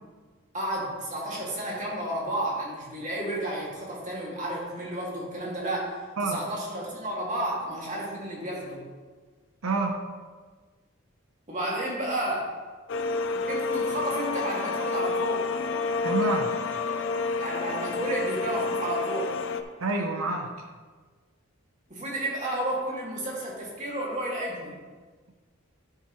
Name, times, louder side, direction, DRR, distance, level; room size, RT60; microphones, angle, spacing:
voice 1, 0.5-8.8 11.5-12.5 13.3-15.5 17.4-19.3 21.9-24.8, right 1 dB, 35° right, -5 dB, 2.2 m, -32 dB
voice 2, 9.6-10.0 16.0-16.6 19.8-20.5, right 3 dB, 80° right, 3 dB, 0.8 m, -28 dB
sound 1, 12.9-19.6, left 4 dB, 60° left, 0.5 m, -29 dB
11.5 x 5.7 x 3.1 m, 1.4 s
head